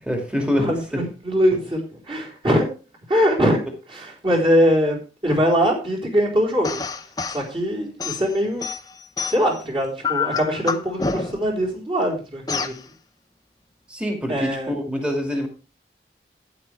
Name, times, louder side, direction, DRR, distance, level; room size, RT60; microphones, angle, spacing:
voice 1, 0.0-1.1 13.9-15.5, equal, 5° right, 3 dB, 2.3 m, -25 dB
voice 2, 0.5-2.7 3.1-3.6 3.9-5.0 5.2-6.8 7.3-8.7 9.3-12.7 14.3-14.7, equal, 30° right, -2 dB, 4.1 m, -22 dB
sound 1, 6.6-7.4 8.0-9.6 10.0-11.5 12.5-12.8, left 5 dB, 20° left, 0.6 m, -27 dB
12.0 x 9.7 x 3.4 m, 0.34 s
head